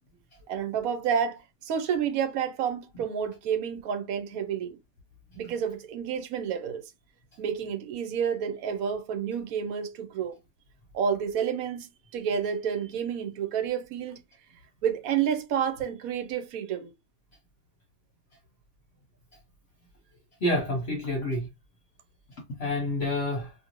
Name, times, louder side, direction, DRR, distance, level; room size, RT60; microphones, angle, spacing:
voice 1, 0.5-4.8 5.4-6.8 7.4-10.3 10.9-14.2 14.8-16.9, right 8 dB, 80° right, 1.0 m, -30 dB
voice 2, 20.4-21.5 22.6-23.5, left 1 dB, 50° left, 1.0 m, -28 dB
2.6 x 2.6 x 2.9 m
omnidirectional pair, 1.5 m